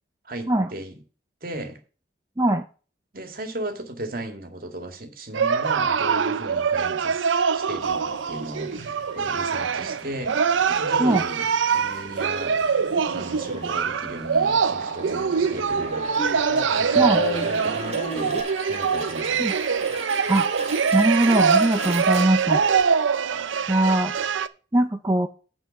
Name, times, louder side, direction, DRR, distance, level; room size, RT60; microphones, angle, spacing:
voice 1, 0.3-1.0 1.4-1.8 3.1-10.4 10.7-11.5 11.7-12.6 13.1-16.1 16.6-18.4 18.7-19.4, right 1 dB, 50° right, 2.0 m, -36 dB
sound 1, 5.3-24.5, right 6 dB, 90° right, 0.6 m, -24 dB
sound 2, 7.8-18.4, left 1 dB, 40° left, 2.2 m, -38 dB
sound 3, 12.3-22.8, right 3 dB, 35° right, 1.5 m, -38 dB
voice 2, 20.9-22.6 23.7-24.1 24.7-25.3, right 1 dB, 20° right, 0.5 m, -21 dB
9.3 x 4.5 x 7.0 m
head